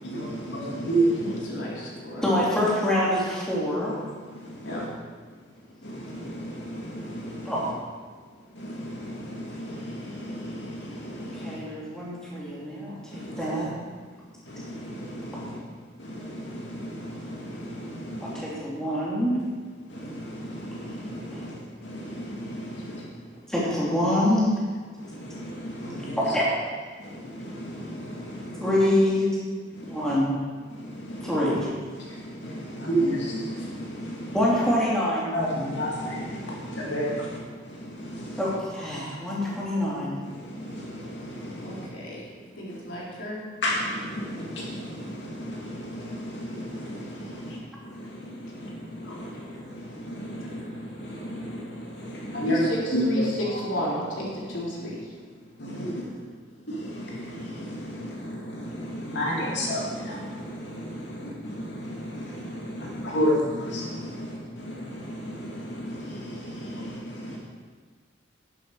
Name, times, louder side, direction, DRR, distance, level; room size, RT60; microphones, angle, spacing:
voice 1, 0.0-1.4 4.6-4.8 5.8-7.5 8.6-11.5 13.1-13.5 14.5-15.5 16.0-18.4 19.9-21.5 21.8-23.0 25.2-26.2 27.1-28.6 29.8-29.9 30.8-31.3 32.0-34.4 35.3-37.4 37.7-38.4 40.3-41.9 43.6-47.4 48.0-53.0 55.6-56.0 56.7-67.4, equal, 65° left, -4 dB, 2.4 m, -32 dB
voice 2, 1.2-2.3 4.6-4.8 27.2-27.3 41.6-42.2 42.6-43.4 49.0-49.2 52.4-55.0 63.0-63.4, equal, 85° left, -5 dB, 3.6 m, -32 dB
voice 3, 2.2-3.9 7.4-7.6 11.3-13.0 13.4-13.7 18.2-19.4 21.3-21.4 23.5-24.5 26.2-26.4 28.6-29.3 29.8-30.3 31.2-31.7 34.3-35.3 38.4-40.2, left 1 dB, 5° left, -7 dB, 2.8 m, -25 dB
11.5 x 11.0 x 4.8 m, 1.5 s
head